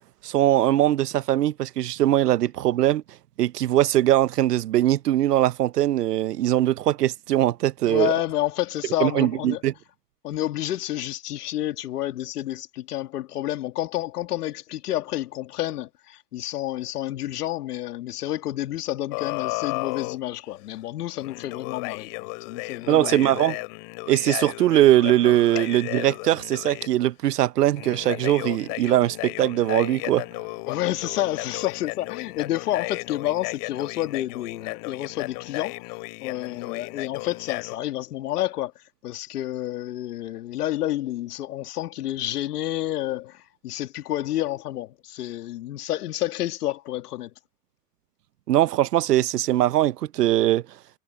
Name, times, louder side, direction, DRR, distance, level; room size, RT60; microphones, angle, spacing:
voice 1, 0.2-3.0 3.4-8.1 9.0-9.7 22.9-23.6 24.1-30.2 48.5-50.6, right 13 dB, 80° right, 0.9 m, -21 dB
voice 2, 7.9-9.6 10.2-23.4 30.7-47.3, left 14 dB, 75° left, 2.1 m, -29 dB
sound 1, 19.1-20.2 21.2-26.9 27.8-37.8, left 35 dB, 50° left, 2.5 m, -34 dB
hypercardioid pair, 100°, 47 cm